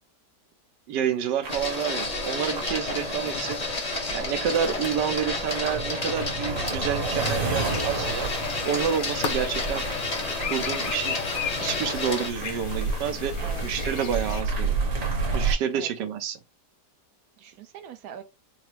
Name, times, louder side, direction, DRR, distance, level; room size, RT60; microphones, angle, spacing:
voice 1, 0.9-3.6 4.1-8.3 8.6-9.9 10.5-11.2 11.6-13.3 13.6-14.7 15.3-16.4, right 8 dB, 85° right, 1.3 m, -29 dB
sound 1, 1.4-15.5, right 4 dB, 50° right, 1.4 m, -32 dB
Printer, 1.5-12.3, left 3 dB, 35° left, 0.7 m, -31 dB
voice 2, 2.9-3.2 4.9-5.8 13.4-14.0 15.7-15.9 17.4-18.2, right 8 dB, 70° right, 1.1 m, -43 dB
sound 2, 7.2-14.4, left 8 dB, 65° left, 1.0 m, -35 dB
5.5 x 2.0 x 3.1 m
omnidirectional pair, 1.8 m